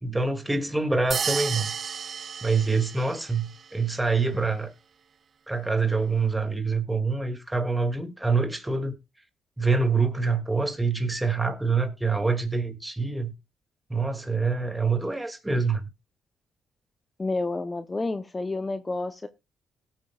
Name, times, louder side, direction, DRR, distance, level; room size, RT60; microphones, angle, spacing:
voice 1, 0.0-1.7 2.4-4.7 5.5-8.9 9.6-13.3 13.9-15.8, right 4 dB, 10° right, 2.2 m, -26 dB
sound 1, 1.1-3.4, right 7 dB, 50° right, 0.6 m, -32 dB
voice 2, 17.2-19.3, left 3 dB, 20° left, 0.7 m, -30 dB
17.5 x 8.8 x 2.3 m
cardioid pair, 90°, 0 cm